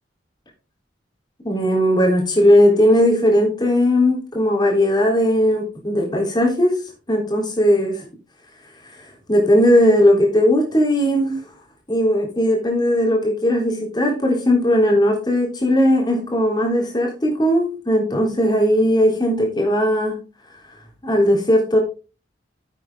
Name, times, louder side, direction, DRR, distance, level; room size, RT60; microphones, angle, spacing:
voice 1, 1.4-6.8 7.1-8.1 9.3-11.4 11.9-20.2 21.0-21.8, equal, 25° left, 0 dB, 3.8 m, -17 dB
10.5 x 8.3 x 3.9 m, 0.33 s
head